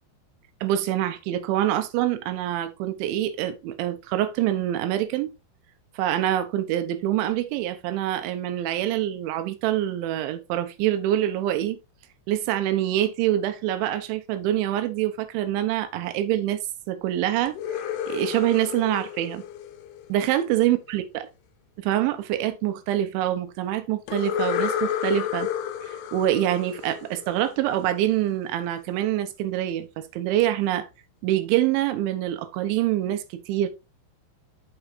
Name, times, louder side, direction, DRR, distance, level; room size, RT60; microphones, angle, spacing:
voice 1, 0.6-5.3 6.0-11.8 12.3-16.6 16.9-19.4 20.1-21.3 21.8-25.5 25.9-30.9 31.2-33.7, right 12 dB, 80° right, 3.3 m, -25 dB
sound 1, 17.5-20.4 24.1-27.8, left 9 dB, 80° left, 2.3 m, -31 dB
8.5 x 7.3 x 2.6 m
omnidirectional pair, 5.4 m